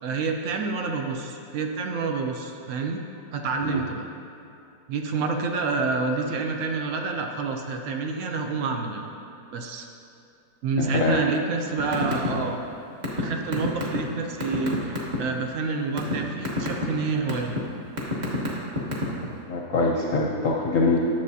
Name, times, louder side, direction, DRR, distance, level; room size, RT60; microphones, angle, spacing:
voice 1, 0.0-3.0 3.3-4.1 4.9-9.1 9.5-9.9 10.6-12.6 13.2-17.6, right 4 dB, 70° right, 3 dB, 0.7 m, -28 dB
voice 2, 10.8-11.2 19.5-21.0, left 3 dB, 60° left, -2 dB, 0.9 m, -23 dB
sound 1, 11.8-12.3 12.6-15.2 15.7-16.1 16.4-16.8 17.3-17.6 18.0-19.3, left 2 dB, 30° right, 1.1 m, -27 dB
10.5 x 7.0 x 2.7 m, 2.7 s
omnidirectional pair, 1.9 m